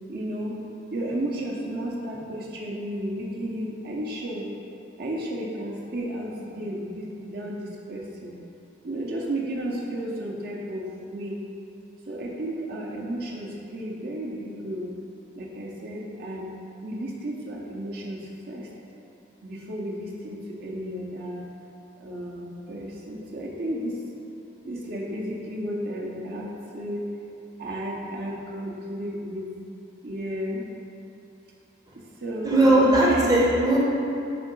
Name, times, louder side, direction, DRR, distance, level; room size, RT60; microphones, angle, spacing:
voice 1, 0.1-0.6 0.9-4.5 5.0-8.3 8.8-11.4 12.1-14.9 15.4-16.5 16.8-18.7 19.4-21.5 22.0-24.0 24.6-27.1 27.6-29.5 30.0-30.6 32.2-33.3, right 1 dB, 55° right, -3 dB, 0.7 m, -33 dB
voice 2, 32.4-33.8, right 1 dB, 20° right, -5 dB, 0.7 m, -18 dB
5.1 x 3.6 x 5.2 m, 2.8 s
head